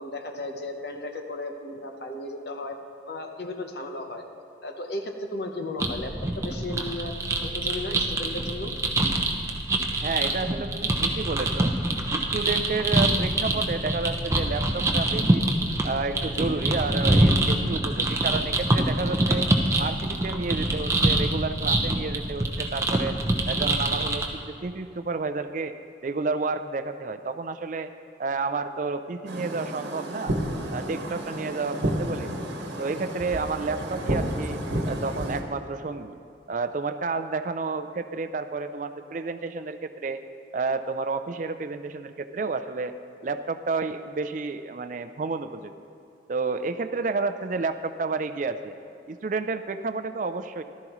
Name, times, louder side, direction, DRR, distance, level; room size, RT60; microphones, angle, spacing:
voice 1, 0.0-2.8 3.1-4.2 4.6-7.1 7.5-8.7, left 2 dB, 60° left, 4 dB, 0.9 m, -35 dB
sound 1, 5.8-24.2, right 1 dB, 15° right, 0.7 m, -25 dB
voice 2, 9.9-11.7 12.1-15.5 15.8-19.5 19.8-23.2 23.5-25.7 26.0-27.9 28.2-30.3 30.7-32.4 32.8-34.6 34.9-36.1 36.5-40.2 40.5-42.9 43.2-45.7 46.3-48.8 49.1-50.6, right 3 dB, 45° right, 9 dB, 0.4 m, -30 dB
sound 2, 29.3-35.4, right 1 dB, 75° right, 1.3 m, -31 dB
14.5 x 12.5 x 3.1 m, 2.5 s
head